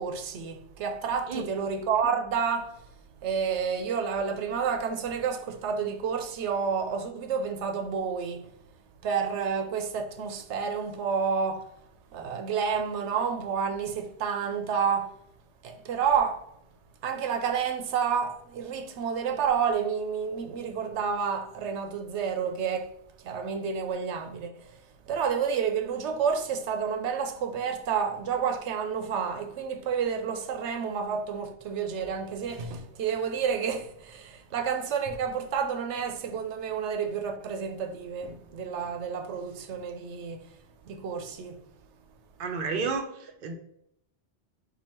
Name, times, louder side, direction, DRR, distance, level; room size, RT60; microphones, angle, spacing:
voice 1, 0.0-2.7 3.2-8.5 9.0-11.7 12.1-15.1 15.6-16.4 17.0-22.9 23.2-24.6 25.1-40.5 40.9-41.6, right 6 dB, 80° right, 0.9 m, -30 dB
voice 2, 42.4-43.5, right 4 dB, 55° right, 0.6 m, -31 dB
4.5 x 2.8 x 4.2 m
omnidirectional pair, 1.2 m